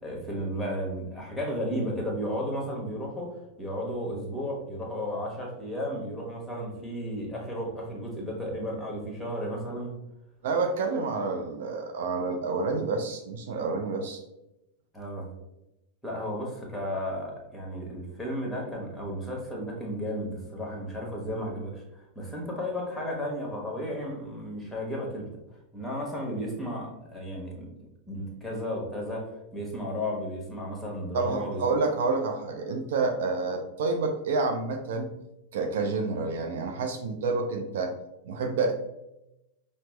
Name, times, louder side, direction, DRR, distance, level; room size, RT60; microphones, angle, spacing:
voice 1, 0.0-9.9 14.9-15.3 16.0-31.6, equal, 5° left, -1 dB, 1.2 m, -34 dB
voice 2, 10.4-14.2 31.1-35.1 35.5-37.9 38.2-38.7, right 3 dB, 55° right, 4 dB, 0.4 m, -28 dB
5.6 x 2.0 x 3.2 m, 0.90 s
figure-of-eight pair, 90°, 0 cm